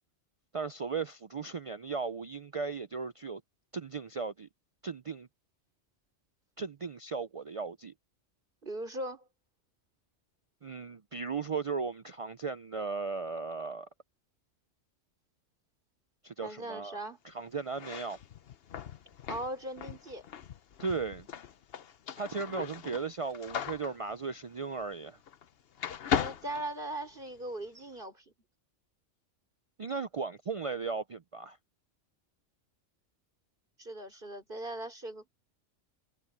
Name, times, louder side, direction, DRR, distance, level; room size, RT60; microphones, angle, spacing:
voice 1, 0.5-3.4 3.7-4.5 4.8-5.3 6.6-7.9 10.6-13.9 16.2-17.0 17.2-18.2 20.8-21.3 22.2-25.2 29.8-31.6, right 4 dB, 65° right, 0.3 m, -36 dB
voice 2, 8.6-9.3 16.4-17.2 19.3-20.2 26.1-28.2 33.8-35.3, right 1 dB, 45° right, 4.0 m, -39 dB
sound 1, 17.7-25.5 25.8-27.4, left 8 dB, 55° left, 0.9 m, -38 dB
omnidirectional pair, 1.2 m